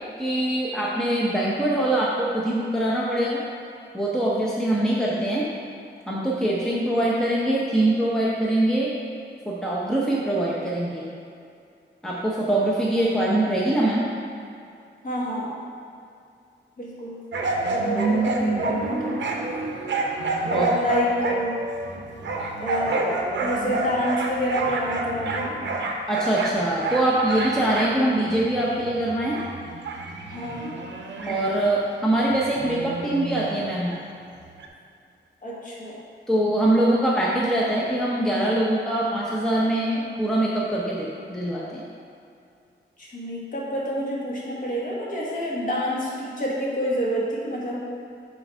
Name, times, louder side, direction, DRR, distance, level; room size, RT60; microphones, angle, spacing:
voice 1, 0.2-3.4 3.9-5.4 6.1-8.9 9.5-11.0 12.0-14.1 18.0-18.1 20.5-20.7 26.1-29.4 31.3-33.9 36.3-41.8, right 1 dB, 5° left, -5 dB, 0.6 m, -23 dB
voice 2, 15.0-15.6 16.8-17.2 17.7-19.2 20.4-21.6 22.6-25.5 30.3-30.8 35.4-35.9 43.0-47.8, equal, 45° left, -5 dB, 1.4 m, -28 dB
sound 1, 17.3-31.7 32.2-34.0 34.6-34.7, right 3 dB, 70° right, 0.7 m, -28 dB
7.5 x 3.3 x 5.3 m, 2.4 s
wide cardioid pair, 170°, 20 cm